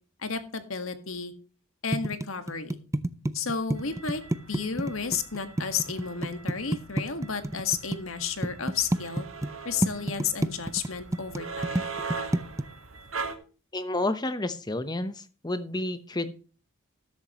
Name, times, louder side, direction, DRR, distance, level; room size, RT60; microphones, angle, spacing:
voice 1, 0.2-1.3 1.8-2.8 3.3-4.2 4.5-9.3 9.7-11.9, left 6 dB, 75° left, 8 dB, 1.7 m, -32 dB
sound 1, 1.9-8.0 8.4-9.5 9.8-12.6, right 1 dB, 15° right, 0.5 m, -28 dB
sound 2, 3.8-13.4, right 4 dB, 75° right, 1.6 m, -41 dB
voice 2, 13.7-16.3, left 2 dB, 20° left, 12 dB, 0.9 m, -30 dB
13.5 x 11.0 x 3.0 m, 0.37 s
head